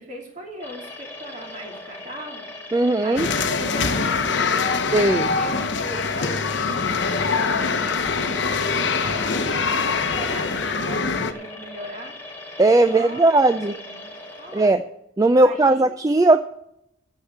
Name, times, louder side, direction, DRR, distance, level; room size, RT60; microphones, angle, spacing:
voice 1, 0.0-2.5 3.0-6.8 7.3-12.1 12.8-13.3 13.7-14.8 15.3-15.9 16.3-16.4, right 1 dB, 40° right, 0 dB, 2.8 m, -38 dB
sound 1, 0.6-14.6, left 1 dB, 10° left, 2.4 m, -39 dB
voice 2, 2.7-3.3 4.9-5.3 12.6-13.7 14.5-14.8 15.2-16.4, right 2 dB, 15° right, 10 dB, 0.3 m, -17 dB
sound 2, 3.2-11.3, left 4 dB, 65° left, 0.8 m, -23 dB
9.9 x 7.3 x 7.7 m, 0.80 s
head